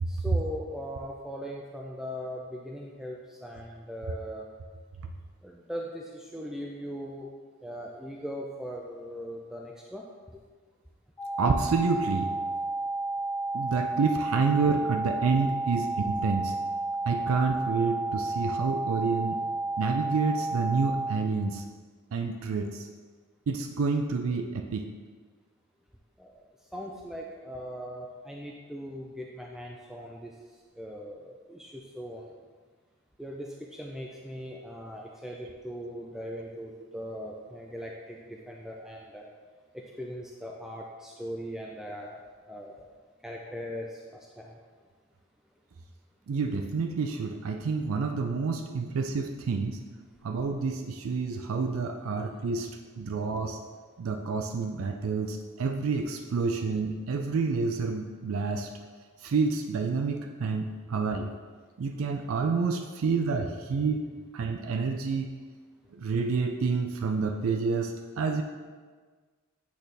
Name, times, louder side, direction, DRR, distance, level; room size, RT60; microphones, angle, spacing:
voice 1, 0.1-4.5 5.4-7.3 7.6-10.0 15.2-15.4 26.2-26.3 26.7-30.3 30.8-32.2 33.2-39.3 39.7-42.2 42.5-42.9 43.2-44.0 44.4-44.5 52.0-52.3, equal, ahead, -2 dB, 0.4 m, -39 dB
sound 1, 11.2-21.2, right 2 dB, 15° left, 1.0 m, -31 dB
voice 2, 11.4-12.3 13.5-16.5 17.1-19.4 19.8-21.6 22.1-22.9 23.5-24.9 46.3-49.8 50.2-52.7 53.0-53.6 54.0-58.7 59.2-61.3 61.8-64.0 64.3-65.3 65.9-68.4, right 4 dB, 70° right, 5 dB, 0.4 m, -28 dB
8.3 x 4.1 x 3.3 m, 1.5 s
head